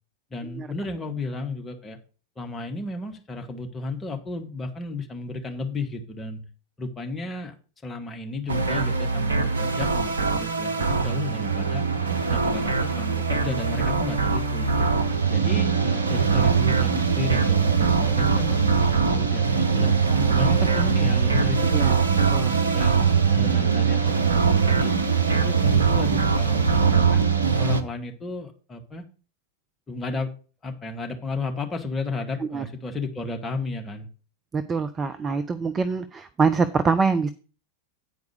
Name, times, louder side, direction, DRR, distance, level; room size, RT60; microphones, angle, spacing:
voice 1, 0.3-2.0 2.4-6.5 6.8-7.5 7.8-11.8 12.3-14.9 15.3-20.0 20.2-22.1 22.7-24.9 25.3-29.0 29.9-30.3 30.6-34.1, left 2 dB, 15° left, 3 dB, 1.7 m, -33 dB
sound 1, 8.5-27.8, right 5 dB, 70° right, 0.9 m, -22 dB
voice 2, 20.1-20.4 21.7-22.0 22.3-22.6 32.4-32.6 34.5-37.3, right 4 dB, 20° right, 12 dB, 0.6 m, -25 dB
9.4 x 4.8 x 6.4 m, 0.36 s
figure-of-eight pair, 90°, 0 cm